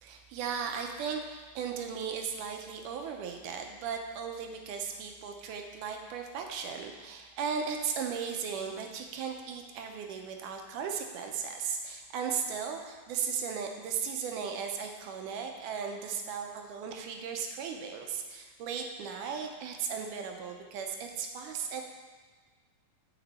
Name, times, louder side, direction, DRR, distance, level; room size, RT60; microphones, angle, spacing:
voice 1, 0.0-21.8, right 6 dB, 75° right, 4 dB, 2.1 m, -36 dB
9.7 x 6.1 x 4.2 m, 1.4 s
omnidirectional pair, 4.1 m